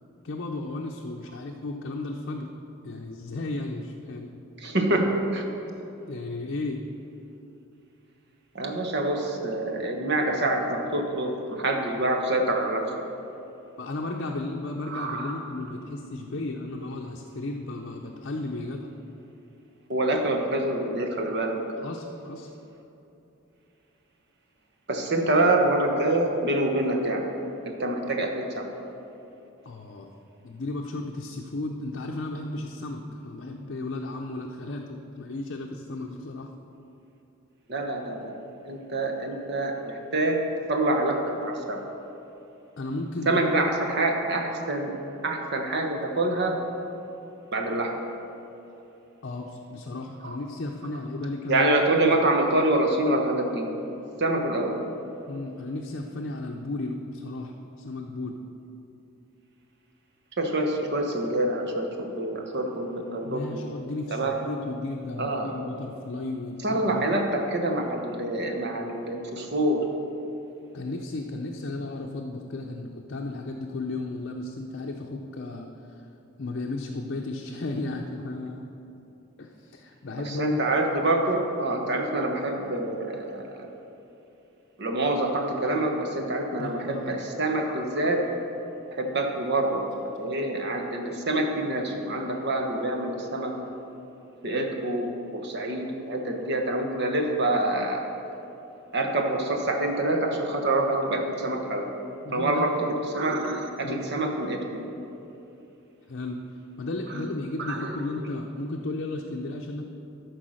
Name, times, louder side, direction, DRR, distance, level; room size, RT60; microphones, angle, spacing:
voice 1, 0.2-2.5 2.8-4.3 6.1-6.8 13.8-18.9 21.8-22.5 29.6-30.1 30.4-36.5 42.8-43.4 49.2-51.7 55.3-58.4 63.2-67.2 70.7-76.0 76.4-78.7 79.4-80.6 86.6-87.2 102.2-102.7 103.8-104.1 106.1-106.4 106.8-109.9, left 2 dB, 60° left, 1 dB, 0.6 m, -34 dB
voice 2, 4.6-5.4 8.5-12.8 14.9-15.3 19.9-21.6 24.9-27.2 27.6-28.7 37.7-38.3 38.6-40.4 40.7-41.8 43.3-45.0 45.2-46.6 47.5-47.9 50.2-50.4 51.5-53.7 54.2-54.8 60.4-63.6 64.1-64.3 65.2-65.5 66.6-69.8 80.3-83.7 84.8-88.2 88.9-93.5 94.4-98.0 98.9-101.9 102.3-104.9 107.1-107.2 107.8-107.9, right 1 dB, 55° right, 3 dB, 1.1 m, -26 dB
12.5 x 4.8 x 6.3 m, 2.9 s
head